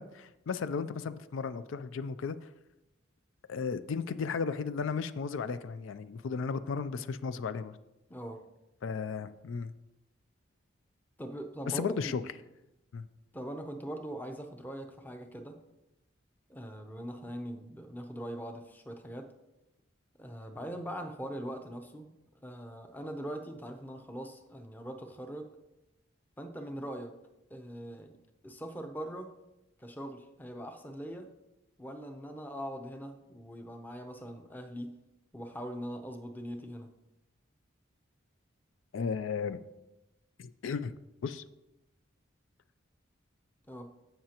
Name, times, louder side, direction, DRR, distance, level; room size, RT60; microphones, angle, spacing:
voice 1, 0.0-2.5 3.5-7.7 8.8-9.7 11.7-12.2 12.9-13.1 38.9-39.6 40.4-41.0 41.2-41.4, left 5 dB, 80° left, 13 dB, 0.4 m, -35 dB
voice 2, 8.1-8.4 11.2-11.9 13.3-15.6 16.5-19.3 20.2-22.1 22.4-25.5 26.4-27.1 27.5-28.2 28.4-29.3 29.8-31.3 31.8-34.9 35.3-36.9 43.7-43.9, equal, 10° left, 5 dB, 0.6 m, -41 dB
15.0 x 5.7 x 2.9 m, 0.96 s
head